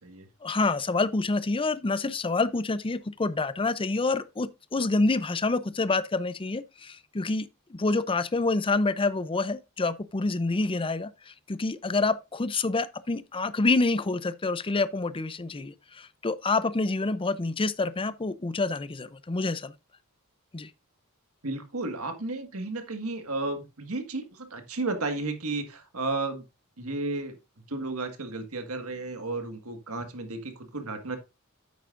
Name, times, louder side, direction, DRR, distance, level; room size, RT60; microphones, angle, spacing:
voice 1, 0.4-19.7 20.5-20.7, left 3 dB, 25° left, 0.5 m, -27 dB
voice 2, 21.4-26.4 26.8-27.3 27.7-31.2, right 3 dB, 75° right, 1.7 m, -33 dB
9.4 x 8.1 x 2.5 m
head